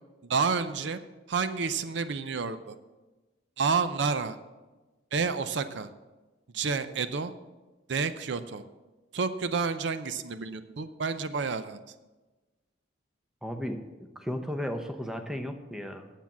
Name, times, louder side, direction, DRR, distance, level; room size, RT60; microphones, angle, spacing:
voice 1, 0.2-1.0 1.3-2.8 3.6-4.4 5.1-5.9 6.5-7.3 7.9-8.6 9.1-11.8, right 5 dB, 65° right, 11 dB, 0.5 m, -29 dB
voice 2, 13.4-16.1, equal, 5° right, 5 dB, 0.7 m, -35 dB
9.5 x 7.4 x 7.2 m, 1.2 s
head